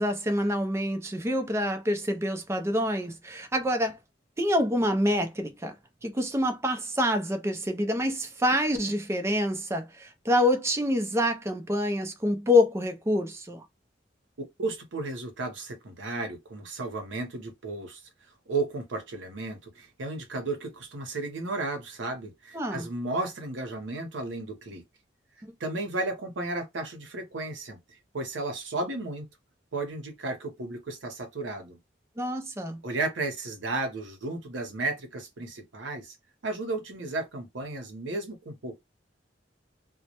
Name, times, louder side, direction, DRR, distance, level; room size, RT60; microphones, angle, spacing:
voice 1, 0.0-4.0 4.4-5.8 6.0-13.7 22.5-22.9 32.2-32.8, left 1 dB, 15° right, 0.4 m, -26 dB
voice 2, 14.4-18.0 18.5-24.8 25.6-27.8 28.1-29.3 29.7-31.8 32.8-36.2 36.4-38.8, right 2 dB, 85° right, 0.8 m, -33 dB
2.1 x 2.1 x 2.8 m
head